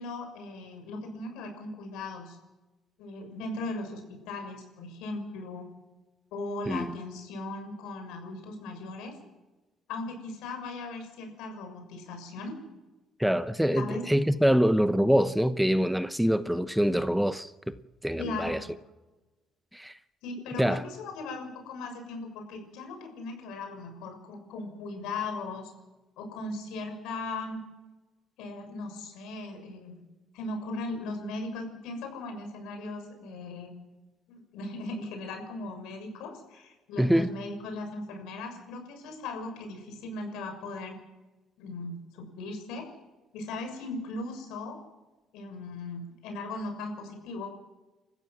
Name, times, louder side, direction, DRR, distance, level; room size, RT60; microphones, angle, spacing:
voice 1, 0.0-2.4 3.0-5.7 6.3-9.1 9.9-12.6 13.8-14.0 18.2-18.6 20.2-25.7 26.2-27.6 28.4-30.0 30.3-33.7 34.3-41.0 41.6-42.9 43.3-44.8 45.3-47.5, left 2 dB, 90° left, 6.7 m, -38 dB
voice 2, 13.2-17.5 18.0-18.6 19.7-20.0 20.6-20.8 37.0-37.3, equal, ahead, 0.9 m, -25 dB
29.0 x 15.0 x 7.5 m
cardioid pair, 115°, 0 cm